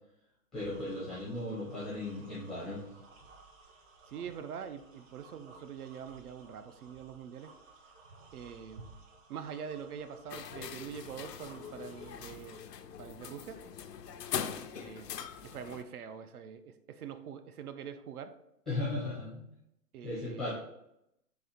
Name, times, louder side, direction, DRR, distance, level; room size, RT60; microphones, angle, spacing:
voice 1, 0.5-2.8 18.7-19.4 20.0-20.6, left 2 dB, ahead, -10 dB, 0.5 m, -36 dB
sound 1, 0.5-12.6, right 3 dB, 50° right, 1.1 m, -56 dB
voice 2, 4.1-7.5 8.3-8.9 9.3-12.6 13.0-13.7 14.7-15.1 15.4-18.4 19.9-20.6, right 7 dB, 70° right, 10 dB, 0.5 m, -44 dB
sound 2, 10.3-15.8, left 8 dB, 80° left, 0.6 m, -42 dB
4.2 x 2.5 x 4.1 m, 0.82 s
hypercardioid pair, 135°, 48 cm